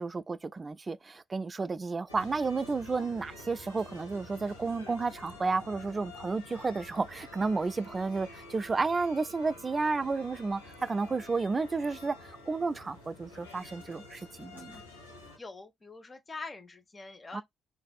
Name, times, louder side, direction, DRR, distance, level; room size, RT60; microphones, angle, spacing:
voice 1, 0.0-14.8 17.3-17.4, right 4 dB, 30° right, 0.3 m, -32 dB
sound 1, 2.1-15.4, left 2 dB, 90° left, 0.9 m, -49 dB
voice 2, 15.4-17.4, left 3 dB, 30° left, 0.9 m, -44 dB
4.0 x 2.6 x 2.3 m
figure-of-eight pair, 45°, 0 cm